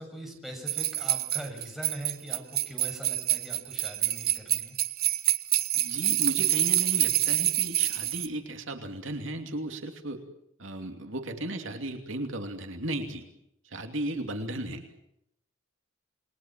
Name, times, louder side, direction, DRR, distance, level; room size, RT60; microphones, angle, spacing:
voice 1, 0.0-4.8 14.1-14.3, equal, ahead, 2 dB, 6.8 m, -42 dB
sound 1, 0.7-8.3, right 14 dB, 50° right, 1.2 m, -27 dB
voice 2, 5.7-10.2 10.6-13.3 13.6-14.9, right 1 dB, 65° right, 5 dB, 2.7 m, -35 dB
29.0 x 22.0 x 7.5 m, 0.77 s
head